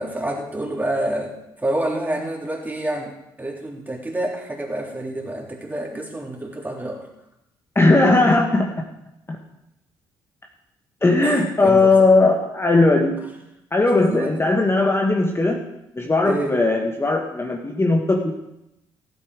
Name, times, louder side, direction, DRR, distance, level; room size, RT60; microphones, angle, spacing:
voice 1, 0.0-7.1 11.2-12.1 13.9-14.3 16.2-16.6, right 1 dB, 15° right, -1 dB, 3.6 m, -28 dB
voice 2, 7.7-8.7 11.0-13.2 13.7-15.6 15.9-18.3, left 2 dB, 20° left, 1 dB, 1.7 m, -18 dB
15.0 x 8.4 x 4.9 m, 0.86 s
hypercardioid pair, 45°, 11 cm